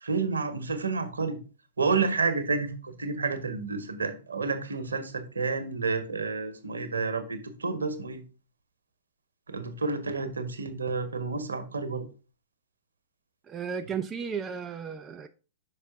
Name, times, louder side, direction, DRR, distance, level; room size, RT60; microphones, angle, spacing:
voice 1, 0.0-1.4 1.8-8.2 9.5-12.0, right 4 dB, 75° right, 1.0 m, -30 dB
voice 2, 13.5-15.3, right 6 dB, 20° right, 0.4 m, -34 dB
5.7 x 5.0 x 3.5 m
figure-of-eight pair, 105°, 0 cm